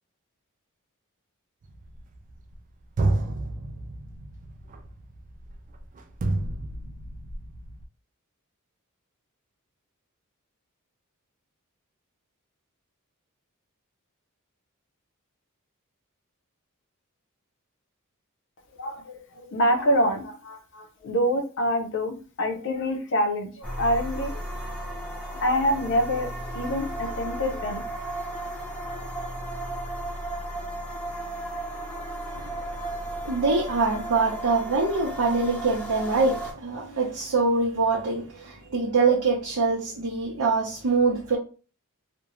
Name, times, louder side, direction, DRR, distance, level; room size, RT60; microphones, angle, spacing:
sound 1, 1.6-2.6 3.0-7.8, right 2 dB, 35° right, 0.3 m, -30 dB
voice 1, 18.8-19.2 19.5-24.4 25.3-26.3 26.5-27.8, equal, 60° left, 0.6 m, -26 dB
sound 2, 23.6-36.5, right 1 dB, 5° left, 0.6 m, -35 dB
voice 2, 32.3-41.4, right 3 dB, 75° right, 0.6 m, -24 dB
2.5 x 2.1 x 2.9 m
head